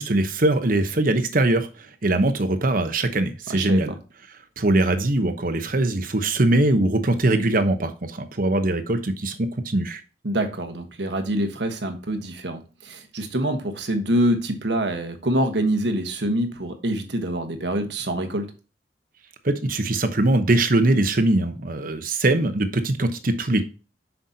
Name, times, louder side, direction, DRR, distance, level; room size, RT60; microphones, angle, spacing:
voice 1, 0.0-3.9 4.6-10.0 19.4-23.6, right 2 dB, 50° right, 9 dB, 0.9 m, -22 dB
voice 2, 3.5-4.0 10.2-18.5, right 1 dB, 75° right, 6 dB, 1.3 m, -25 dB
7.6 x 5.8 x 2.8 m, 0.33 s
head